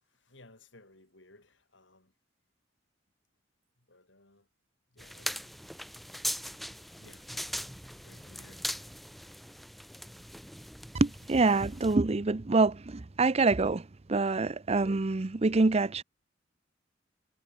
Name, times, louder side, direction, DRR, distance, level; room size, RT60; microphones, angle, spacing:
voice 1, 0.2-2.1 3.9-4.5 4.9-5.4 7.0-7.3 8.0-8.7 9.2-9.4, left 2 dB, 70° left, 5.6 m, -58 dB
sound 1, 5.0-12.0, equal, ahead, 5.0 m, -40 dB
voice 2, 10.9-16.0, right 3 dB, 35° right, 0.6 m, -26 dB
head